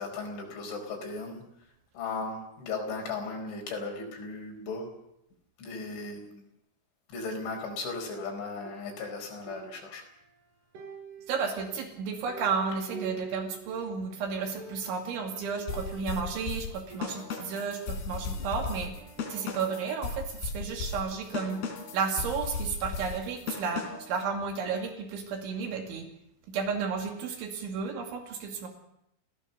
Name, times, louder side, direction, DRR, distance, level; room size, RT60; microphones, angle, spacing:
voice 1, 0.0-1.4 2.0-5.0 5.6-6.5 7.1-10.1, left 3 dB, 75° left, 2 dB, 6.9 m, -36 dB
sound 1, 8.6-10.4 10.7-14.0 14.3-14.4 14.6-15.2 15.7-17.7 18.1-19.8, right 5 dB, 60° right, 5.5 m, -47 dB
voice 2, 11.3-18.9 19.3-21.6 21.9-26.1 26.5-28.7, right 5 dB, 80° right, 3 dB, 4.8 m, -32 dB
sound 2, 15.7-24.2, left 4 dB, 60° left, 5.0 m, -36 dB
28.5 x 17.0 x 6.9 m, 0.79 s
omnidirectional pair, 5.4 m